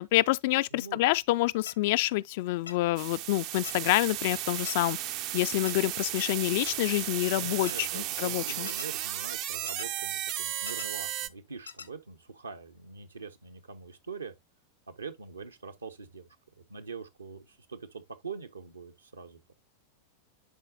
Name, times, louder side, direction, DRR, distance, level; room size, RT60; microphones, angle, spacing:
voice 1, 0.0-5.0 5.3-8.7, left 18 dB, 50° left, 0.3 m, -27 dB
sound 1, 1.7-1.8 2.7-2.8 3.7-3.8 4.7-4.8 5.7-5.8 6.7-6.8 7.7-7.8 8.7-8.9 9.7-9.9 10.7-10.9 11.7-11.9, left 6 dB, 80° left, 0.9 m, -41 dB
sound 2, 3.0-11.3, right 13 dB, 40° right, 0.5 m, -34 dB
voice 2, 7.3-14.3 15.0-16.3 16.6-19.5, right 5 dB, 75° right, 1.0 m, -43 dB
10.5 x 4.2 x 2.6 m
figure-of-eight pair, 90°, 0 cm